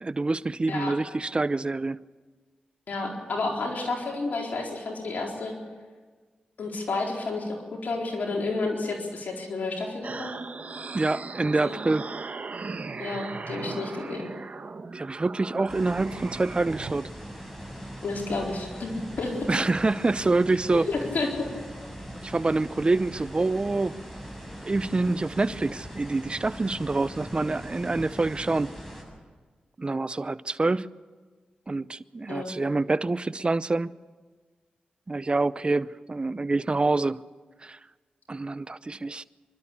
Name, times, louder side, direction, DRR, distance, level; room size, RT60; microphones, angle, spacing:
voice 1, 0.0-2.0 10.9-12.1 14.9-17.1 19.5-20.9 22.2-24.0 24.6-28.7 29.8-30.9 31.7-33.9 35.1-37.2 37.6-37.8 38.3-39.2, right 3 dB, 35° right, 0.6 m, -26 dB
voice 2, 2.9-5.5 6.6-10.3 11.4-11.8 13.0-14.3 18.0-19.5 20.7-21.3 32.3-32.5, left 3 dB, 70° left, 4.2 m, -31 dB
sound 1, 10.0-16.9, right 4 dB, 55° right, 1.2 m, -38 dB
sound 2, 15.7-29.0, equal, 10° left, 7.2 m, -41 dB
25.0 x 12.5 x 8.6 m
cardioid pair, 45°, 3 cm